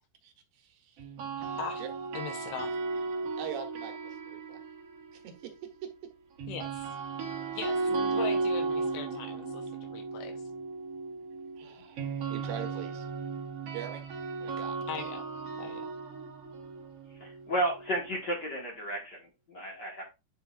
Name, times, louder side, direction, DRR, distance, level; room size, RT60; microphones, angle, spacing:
voice 1, 0.2-1.1 1.4-1.9 3.4-4.6 5.1-5.9 11.6-13.1 13.6-14.0 14.4-14.8, right 9 dB, 75° right, 2.7 m, -43 dB
sound 1, 1.0-5.2 6.4-18.3, right 4 dB, 55° right, 1.8 m, -35 dB
voice 2, 2.1-2.8 6.5-6.9 7.5-10.4 14.9-15.3 15.6-15.9, left 7 dB, 85° left, 2.9 m, -40 dB
voice 3, 17.2-20.0, right 1 dB, 60° left, 1.1 m, -33 dB
9.2 x 5.5 x 2.5 m
omnidirectional pair, 4.4 m